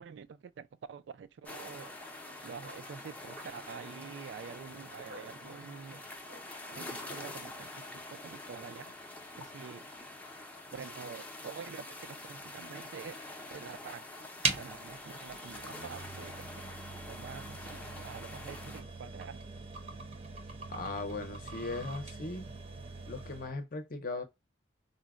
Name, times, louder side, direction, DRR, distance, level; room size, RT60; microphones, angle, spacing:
voice 1, 0.0-1.9 2.4-6.0 6.7-8.9 9.4-9.9 10.7-13.2 13.5-16.5 17.1-19.4, right 6 dB, 65° right, 0.3 m, -47 dB
sound 1, 1.4-18.8, left 2 dB, 10° left, 0.5 m, -46 dB
sound 2, 1.6-7.3, right 1 dB, 85° right, 0.9 m, -56 dB
sound 3, 14.4-23.6, right 4 dB, 35° right, 0.6 m, -41 dB
voice 2, 20.7-22.5 23.0-24.2, left 3 dB, 50° left, 0.6 m, -38 dB
3.8 x 2.1 x 2.2 m
head